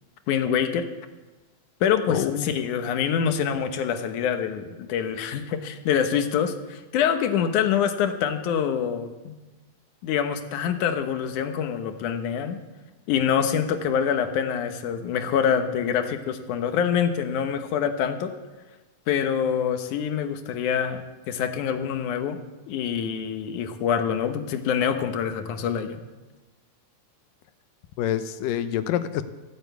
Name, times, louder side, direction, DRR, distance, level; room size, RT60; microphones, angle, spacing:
voice 1, 0.3-0.9 1.8-9.3 10.0-12.6 13.1-18.3 19.1-22.4 22.7-26.0, left 8 dB, 70° left, 8 dB, 2.4 m, -25 dB
voice 2, 2.1-2.5 28.0-29.2, left 11 dB, 90° left, 11 dB, 2.5 m, -26 dB
15.5 x 9.6 x 8.1 m, 1.2 s
omnidirectional pair, 3.8 m